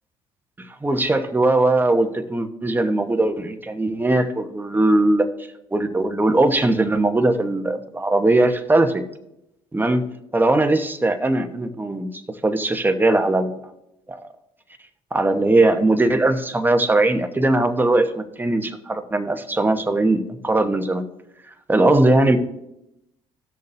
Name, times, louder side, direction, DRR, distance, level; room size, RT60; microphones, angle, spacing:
voice 1, 0.8-5.3 5.7-9.0 9.7-10.0 10.3-12.1 12.4-13.6 14.1-14.2 15.1-21.0 21.7-22.4, right 2 dB, 15° right, 7 dB, 1.1 m, -19 dB
16.0 x 6.5 x 2.7 m, 0.84 s
supercardioid pair, 65°, 13 cm